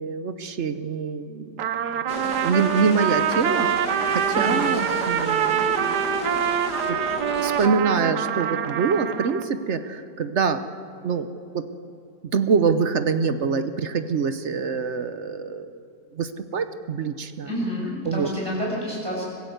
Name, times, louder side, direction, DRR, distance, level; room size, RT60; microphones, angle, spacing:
voice 1, 0.0-1.6 2.0-2.1 2.4-6.4 6.9-7.0 7.4-10.7 11.0-11.3 11.5-11.7 12.3-15.8 16.1-17.5 18.1-18.3, right 5 dB, 50° right, 10 dB, 0.9 m, -25 dB
Trumpet, 1.6-9.5, right 9 dB, 75° right, 1.4 m, -25 dB
sound 1, 2.1-7.7, left 2 dB, 70° left, 2.2 m, -34 dB
sound 2, 3.3-4.8, equal, 55° left, 7.6 m, -44 dB
voice 2, 4.3-4.7 17.4-19.2, equal, 15° right, -4 dB, 7.2 m, -29 dB
24.5 x 15.5 x 8.0 m, 2.7 s
omnidirectional pair, 1.8 m